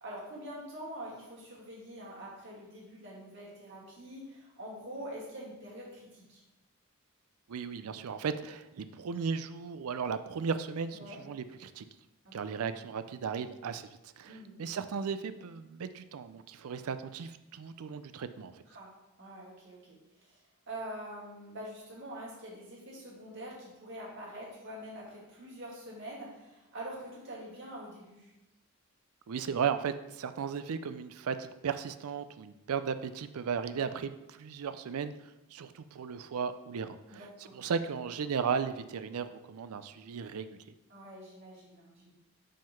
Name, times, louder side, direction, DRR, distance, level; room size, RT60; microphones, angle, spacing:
voice 1, 0.0-6.4 10.9-11.2 12.3-12.5 14.3-14.6 18.7-18.9 19.2-20.4 20.7-28.3 33.7-33.9 37.1-37.6 40.9-42.1, right 1 dB, 55° right, -5 dB, 2.2 m, -45 dB
voice 2, 7.5-11.0 11.3-11.9 12.3-13.9 14.2-18.6 29.3-37.3 37.5-40.6, right 6 dB, 80° right, 12 dB, 0.4 m, -36 dB
5.2 x 3.8 x 5.7 m, 0.97 s
head